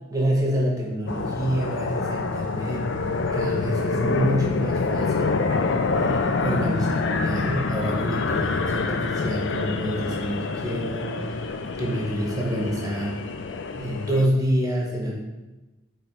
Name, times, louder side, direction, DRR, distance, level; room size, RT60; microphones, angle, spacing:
voice 1, 0.1-2.9 3.3-5.4 5.9-11.4 11.8-13.4 13.7-15.1, right 1 dB, 15° right, -2 dB, 1.3 m, -27 dB
sound 1, 1.1-14.3, left 4 dB, 65° left, 0.5 m, -26 dB
8.3 x 3.3 x 4.8 m, 1.1 s
head